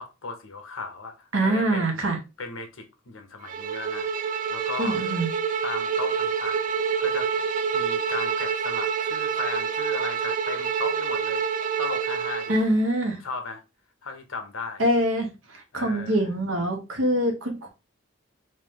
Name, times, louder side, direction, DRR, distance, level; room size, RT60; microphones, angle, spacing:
voice 1, 0.0-2.0 2.4-5.0 5.6-7.3 7.7-11.4 11.8-12.7 13.2-13.6 14.0-14.8 15.7-16.2, left 4 dB, 85° left, 0.8 m, -36 dB
voice 2, 1.3-2.2 4.8-5.3 12.5-13.2 14.8-17.7, right 1 dB, 75° right, 1.0 m, -24 dB
Bowed string instrument, 3.5-12.6, right 6 dB, 40° right, 0.3 m, -27 dB
3.2 x 2.7 x 3.5 m
head